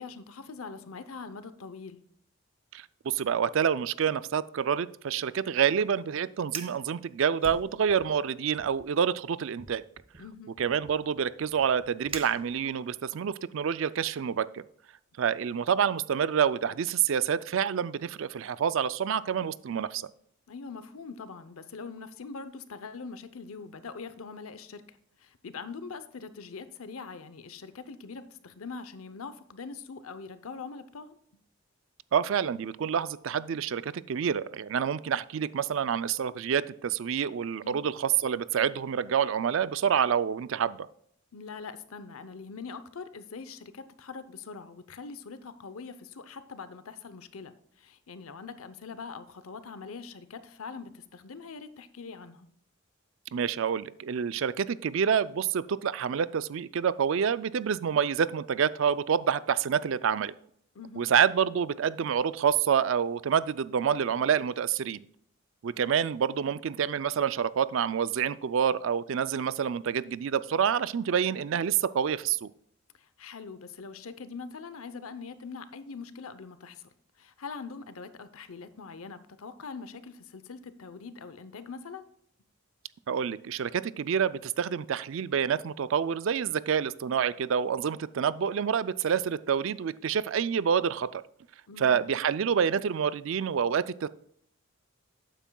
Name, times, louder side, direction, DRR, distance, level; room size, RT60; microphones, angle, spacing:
voice 1, 0.0-2.0 10.2-10.6 20.5-31.2 37.6-37.8 41.3-52.5 60.7-61.1 73.0-82.1 91.7-92.0, left 4 dB, 85° left, 12 dB, 0.7 m, -43 dB
voice 2, 2.7-9.8 10.6-14.6 15.2-20.1 32.1-40.9 53.3-60.3 61.0-65.0 65.6-72.5 83.1-91.2 91.8-94.1, right 7 dB, 70° right, 16 dB, 0.4 m, -27 dB
Fire, 6.4-6.8 7.4-8.2 8.5-8.9 9.6-12.9, right 5 dB, 25° right, 0.7 m, -44 dB
12.0 x 9.0 x 2.3 m, 0.68 s
head